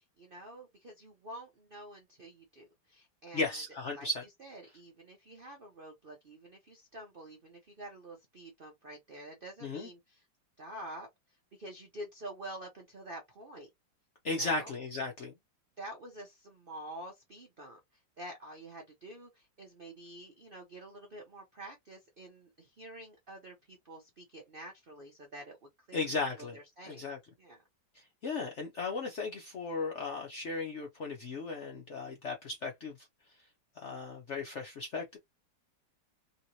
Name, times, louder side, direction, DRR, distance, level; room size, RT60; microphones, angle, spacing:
voice 1, 0.0-3.6 3.9-4.1 4.4-10.2 10.6-11.1 11.6-13.7 14.3-14.7 15.8-26.0 26.4-27.1 27.4-27.6, right 1 dB, 60° right, 0.5 m, -48 dB
voice 2, 3.3-4.2 9.6-9.9 14.2-15.3 25.9-26.6 26.9-27.2 28.2-33.1 33.8-35.2, left 3 dB, 65° left, 0.7 m, -36 dB
3.1 x 3.0 x 2.6 m
omnidirectional pair, 2.0 m